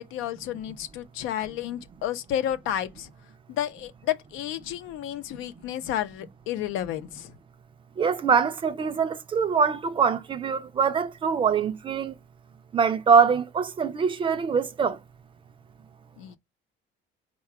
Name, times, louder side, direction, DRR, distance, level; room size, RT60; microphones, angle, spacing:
voice 1, 0.0-3.1 3.5-7.3 16.2-16.4, left 11 dB, 80° left, 0.7 m, -31 dB
voice 2, 8.0-12.1 12.7-15.0, right 6 dB, 25° right, 0.4 m, -23 dB
4.8 x 2.3 x 4.5 m
cardioid pair, 160°, 20 cm